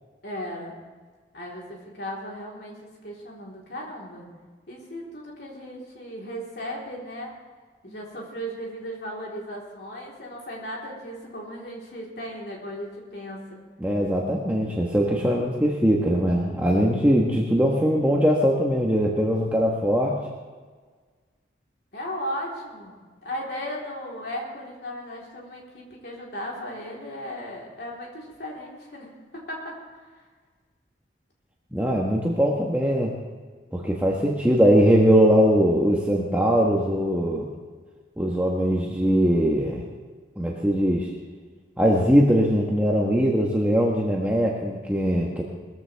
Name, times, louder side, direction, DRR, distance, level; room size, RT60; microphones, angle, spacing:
voice 1, 0.2-0.8 1.3-4.3 4.7-7.3 7.8-13.6 21.9-23.0 23.2-30.1, equal, 60° left, -3 dB, 3.8 m, -36 dB
voice 2, 13.8-20.2 31.7-33.1 33.7-37.4 38.2-39.8 40.4-41.1 41.8-45.4, equal, 10° right, -3 dB, 1.2 m, -21 dB
20.5 x 14.5 x 3.5 m, 1.5 s
head